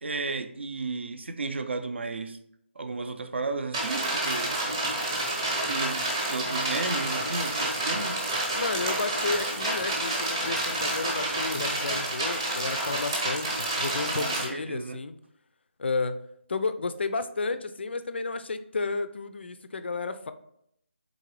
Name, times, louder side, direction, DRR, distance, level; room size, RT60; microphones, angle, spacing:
voice 1, 0.0-2.4 2.8-4.6 5.7-8.2 14.1-15.0, right 3 dB, 60° right, 0.5 m, -34 dB
sound 1, 3.7-14.5, right 1 dB, 20° right, 0.8 m, -29 dB
voice 2, 8.5-15.1 15.8-16.2 16.5-20.3, left 4 dB, 60° left, 0.3 m, -32 dB
4.0 x 3.8 x 3.0 m
figure-of-eight pair, 170°, 7 cm